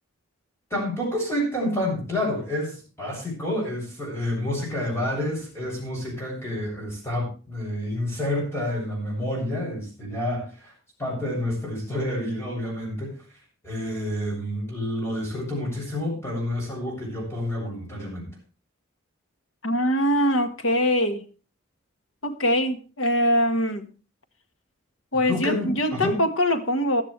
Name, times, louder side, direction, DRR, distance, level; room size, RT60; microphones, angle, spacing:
voice 1, 0.7-10.7 11.0-13.2 13.6-18.3 25.3-26.2, left 1 dB, 10° left, -2 dB, 7.4 m, -29 dB
voice 2, 19.6-21.2 22.2-23.9 25.1-27.0, equal, 65° left, 8 dB, 1.6 m, -23 dB
15.5 x 12.0 x 3.3 m, 0.35 s
head